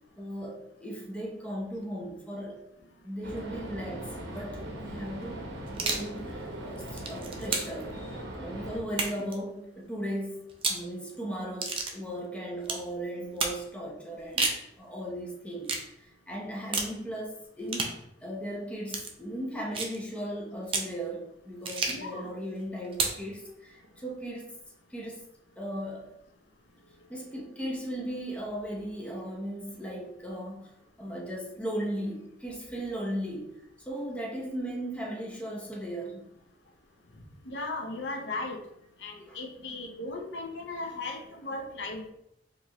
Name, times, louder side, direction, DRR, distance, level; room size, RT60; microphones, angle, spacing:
voice 1, 0.2-2.6 3.0-7.9 8.4-14.5 14.8-15.7 16.0-24.4 24.9-25.2 25.6-26.1 27.1-30.7 31.0-33.5 33.8-36.3 39.3-39.4, equal, 5° left, -3 dB, 0.8 m, -37 dB
sound 1, 3.2-8.8, right 1 dB, 75° right, 0.8 m, -39 dB
sound 2, 5.7-6.1 6.8-7.8 8.9-9.3 10.5-10.9 11.6-12.0 12.6-12.9 13.4-13.6 14.2-14.6 15.6-15.9 16.7-17.0 17.7-18.0 18.9-19.1 19.7-20.0 20.7-20.9 21.6-22.1 22.9-23.2, right 3 dB, 30° right, 0.5 m, -31 dB
voice 2, 21.9-22.3 37.5-38.6 39.0-42.1, left 2 dB, 75° left, 2 dB, 0.7 m, -37 dB
4.5 x 2.6 x 2.9 m, 0.81 s
head